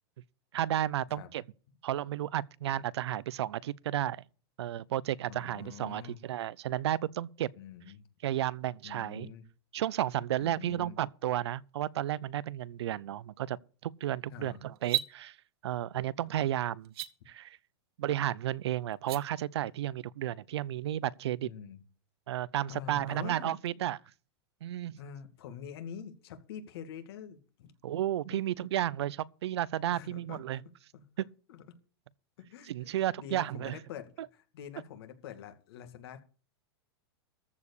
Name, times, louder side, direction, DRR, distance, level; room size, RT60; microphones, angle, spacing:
voice 1, 0.5-1.4 1.8-4.2 4.6-7.5 8.2-9.3 9.7-13.6 13.8-15.4 15.6-16.9 17.3-17.6 18.0-21.5 22.3-24.0 24.6-25.0 27.8-30.6 31.2-31.3 32.7-33.8, right 12 dB, 85° right, 0.6 m, -32 dB
voice 2, 5.3-6.2 7.6-8.0 8.8-9.5 10.4-11.0 14.3-14.6 21.4-21.8 22.7-23.5 25.0-27.7 28.3-28.5 29.9-30.6 30.9-31.0 31.5-31.6 32.4-32.7 33.0-36.2, left 8 dB, 65° left, 2.3 m, -45 dB
sound 1, 14.8-15.1 16.8-17.1 18.9-19.2, right 15 dB, 65° right, 1.2 m, -31 dB
14.0 x 4.9 x 8.3 m
supercardioid pair, 145°, 14 cm